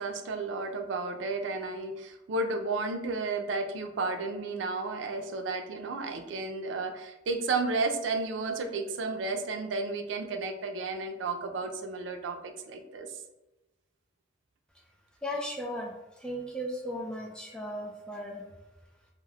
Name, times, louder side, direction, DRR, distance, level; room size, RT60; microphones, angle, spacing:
voice 1, 0.0-13.2, right 3 dB, 90° right, 5 dB, 0.4 m, -33 dB
voice 2, 15.2-15.9 16.2-18.4, equal, 5° left, -1 dB, 0.4 m, -36 dB
2.2 x 2.0 x 3.4 m, 1.0 s
head